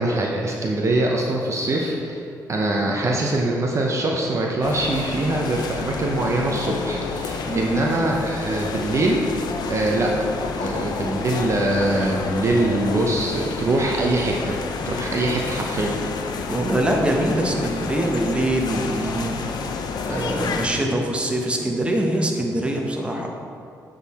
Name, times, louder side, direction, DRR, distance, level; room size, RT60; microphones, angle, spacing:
voice 1, 0.0-2.2 2.5-9.3 9.7-10.3 10.6-14.6 14.9-16.0 20.1-20.2, right 2 dB, 40° right, -1 dB, 0.7 m, -23 dB
sound 1, 4.6-20.7, left 5 dB, 70° left, 0.5 m, -30 dB
voice 2, 7.4-7.9 16.5-19.7 20.1-23.3, right 1 dB, 15° right, 1 dB, 0.9 m, -23 dB
8.0 x 3.8 x 4.2 m, 2.5 s
cardioid pair, 80°, 7 cm